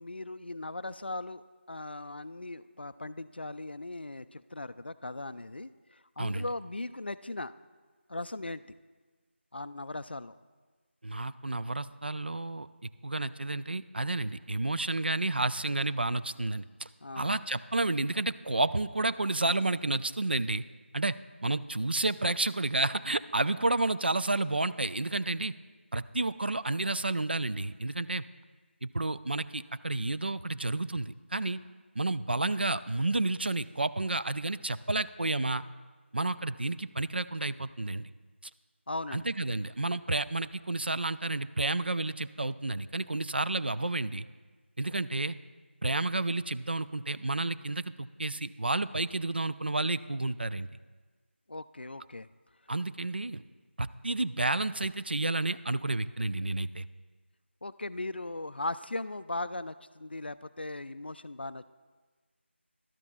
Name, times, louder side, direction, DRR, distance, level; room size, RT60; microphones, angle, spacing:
voice 1, 0.0-7.5 8.1-8.6 9.5-10.3 17.0-17.4 38.9-39.3 51.5-52.3 57.6-61.6, left 2 dB, 55° left, 14 dB, 0.3 m, -38 dB
voice 2, 11.0-12.7 13.0-16.9 17.2-20.6 20.9-21.2 21.4-25.5 25.9-28.2 28.8-31.6 32.0-35.6 36.1-38.1 38.4-38.5 39.1-44.3 44.8-45.4 45.8-50.7 52.7-53.4 53.8-56.8, right 2 dB, 55° right, 13 dB, 0.3 m, -31 dB
17.0 x 12.0 x 2.2 m, 1.4 s
figure-of-eight pair, 165°, 7 cm